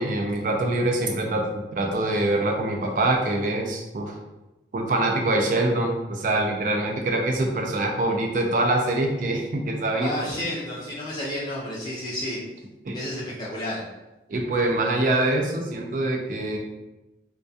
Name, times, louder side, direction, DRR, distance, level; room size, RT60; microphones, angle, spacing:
voice 1, 0.0-4.2 4.7-10.1 12.8-13.0 14.3-16.6, right 2 dB, 50° right, 1 dB, 0.4 m, -24 dB
voice 2, 10.0-12.4 12.9-13.8, left 1 dB, 25° left, -7 dB, 0.4 m, -31 dB
2.2 x 2.2 x 2.6 m, 1.0 s
head